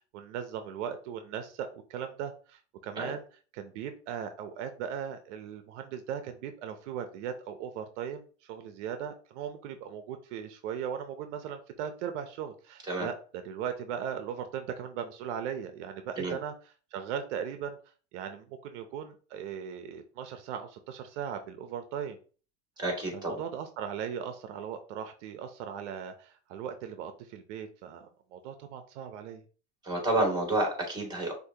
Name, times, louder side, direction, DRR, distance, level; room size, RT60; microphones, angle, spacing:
voice 1, 0.0-3.2 3.5-17.8 18.1-22.2 23.1-29.4, right 8 dB, 75° right, 8 dB, 0.7 m, -38 dB
voice 2, 22.8-23.4 29.8-31.3, right 2 dB, 10° right, 0 dB, 2.3 m, -29 dB
6.4 x 2.8 x 2.8 m, 0.39 s
supercardioid pair, 120°, 36 cm